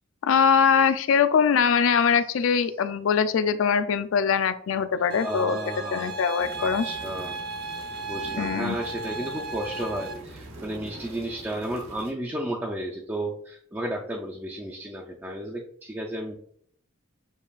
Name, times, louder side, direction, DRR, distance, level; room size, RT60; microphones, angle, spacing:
voice 1, 0.2-6.8 8.4-8.8, left 6 dB, 65° left, 12 dB, 0.3 m, -22 dB
sound 1, 5.1-10.1, right 3 dB, 45° right, 0.7 m, -35 dB
voice 2, 5.2-6.2 6.6-7.4 7.7-16.4, right 1 dB, 10° right, -2 dB, 0.4 m, -33 dB
sound 2, 6.4-12.1, right 1 dB, 90° right, 0.9 m, -44 dB
7.1 x 2.4 x 2.3 m, 0.65 s
head